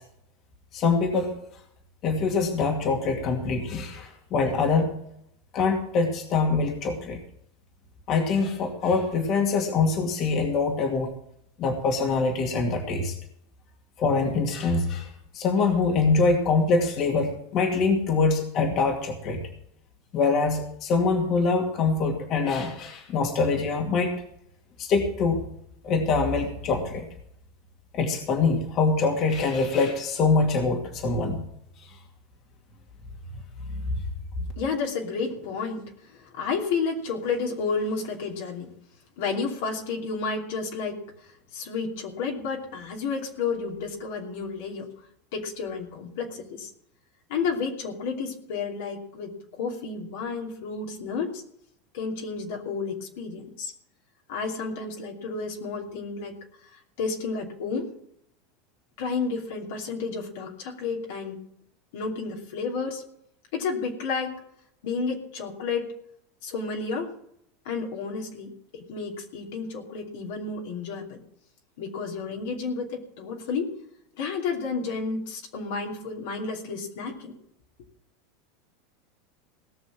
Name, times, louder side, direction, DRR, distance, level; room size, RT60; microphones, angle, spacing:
voice 1, 0.7-1.4 2.0-4.9 5.5-7.2 8.1-11.1 11.6-13.1 14.0-15.1 15.3-19.4 20.1-24.1 24.8-25.4 25.8-27.1 27.9-31.4 31.9-32.0, left 4 dB, 45° left, 2 dB, 2.4 m, -24 dB
voice 2, 34.6-38.7 39.2-41.0 41.5-44.9 45.3-46.7 47.3-51.4 51.9-53.7 54.3-56.3 56.7-57.9 59.0-61.4 61.9-63.0 63.5-64.4 64.8-65.9 66.4-67.1 67.6-71.2 71.8-73.7 74.2-77.4, left 4 dB, 65° left, 0 dB, 2.8 m, -31 dB
18.0 x 6.5 x 7.5 m, 0.73 s
hypercardioid pair, 85°, 0 cm